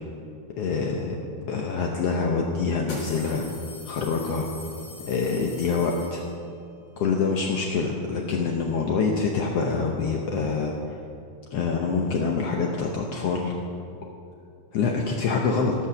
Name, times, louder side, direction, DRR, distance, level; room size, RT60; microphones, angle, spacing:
voice 1, 0.6-1.2 1.5-3.5 3.9-4.5 5.1-6.2 7.0-10.7 11.5-13.5 14.7-15.7, left 4 dB, 80° left, 0 dB, 1.3 m, -25 dB
sound 1, 1.7-1.8 2.8-6.6, left 2 dB, 65° left, 5.2 m, -43 dB
18.0 x 6.2 x 7.0 m, 2.5 s
omnidirectional pair, 4.0 m